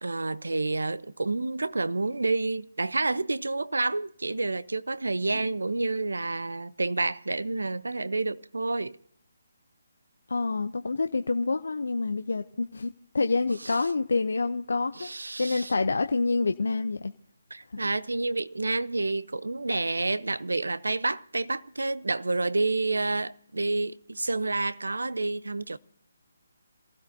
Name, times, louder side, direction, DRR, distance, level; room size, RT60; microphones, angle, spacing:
voice 1, 0.0-9.0 15.0-15.7 17.5-25.8, right 3 dB, 80° right, 0.7 m, -29 dB
voice 2, 10.3-15.1 15.4-17.1 17.7-17.8, left 3 dB, 70° left, 0.6 m, -27 dB
27.0 x 15.5 x 2.7 m
figure-of-eight pair, 150°, 0 cm